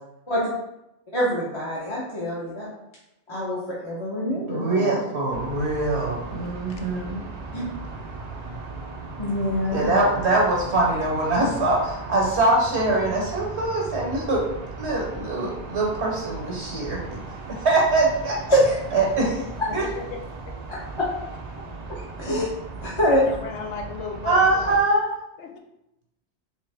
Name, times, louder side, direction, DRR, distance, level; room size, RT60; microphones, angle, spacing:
voice 1, 1.1-2.7 3.3-5.0 7.5-7.6 9.2-9.8 18.5-18.8 22.2-22.5 22.8-23.2, equal, 30° left, -8 dB, 0.8 m, -24 dB
voice 2, 4.5-7.2 9.7-14.5 14.8-17.2 17.5-18.4 18.9-19.4 19.7-19.9 24.2-25.1, right 2 dB, 75° right, -2 dB, 1.1 m, -23 dB
sound 1, 5.3-24.8, right 3 dB, 45° right, 0.5 m, -37 dB
voice 3, 19.8-20.2 22.9-24.8 25.4-25.5, left 5 dB, 85° left, 2 dB, 0.9 m, -35 dB
3.3 x 3.3 x 3.3 m, 0.87 s
omnidirectional pair, 1.2 m